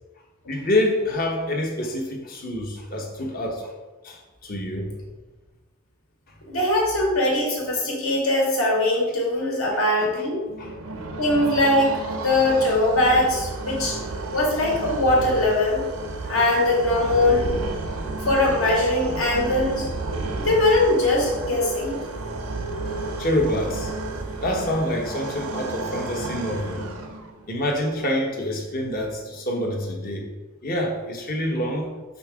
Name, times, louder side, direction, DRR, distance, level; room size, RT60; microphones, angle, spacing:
voice 1, 0.5-3.7 4.0-4.9 10.0-10.2 10.6-10.7 23.2-26.8 27.5-30.3 30.6-31.9, left 1 dB, 40° left, 1 dB, 1.2 m, -27 dB
voice 2, 6.5-10.4 11.2-14.0 14.3-15.8 16.3-17.5 18.3-19.9 20.4-22.0, left 1 dB, 65° left, -2 dB, 2.0 m, -21 dB
sound 1, 10.5-27.5, right 2 dB, 80° right, 0.8 m, -32 dB
6.5 x 5.6 x 3.6 m, 1.2 s
head